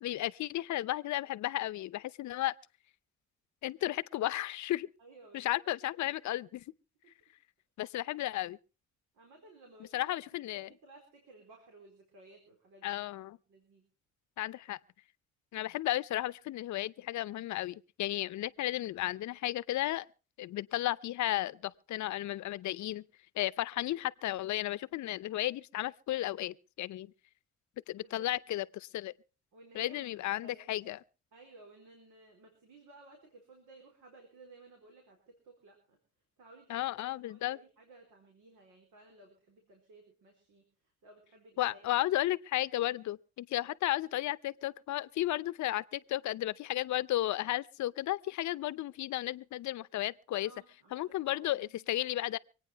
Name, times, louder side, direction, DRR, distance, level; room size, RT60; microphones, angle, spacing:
voice 1, 0.0-2.5 3.6-4.9 5.3-6.6 7.8-8.6 9.9-10.7 12.8-13.4 14.4-14.8 15.5-20.1 20.4-23.0 23.4-27.1 27.9-29.1 29.7-31.0 36.7-37.6 41.6-50.5 50.9-52.4, left 15 dB, 70° left, 0.7 m, -34 dB
voice 2, 5.0-5.6 7.0-7.1 9.1-10.2 10.5-13.8 28.0-28.3 29.5-30.8 31.3-36.0 36.4-36.8 37.1-40.6 41.0-42.1 42.9-43.0 50.4-51.8, right 2 dB, 80° right, 4.1 m, -57 dB
24.5 x 9.2 x 4.6 m
cardioid pair, 90°, 30 cm